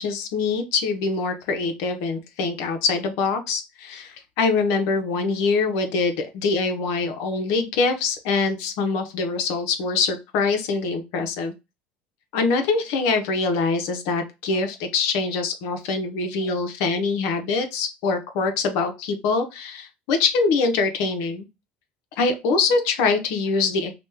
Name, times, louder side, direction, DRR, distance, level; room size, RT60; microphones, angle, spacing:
voice 1, 0.0-11.5 12.3-21.5 22.2-23.9, left 4 dB, 75° left, 7 dB, 0.7 m, -24 dB
2.9 x 2.2 x 3.3 m, 0.25 s
supercardioid pair, 100°, 5 cm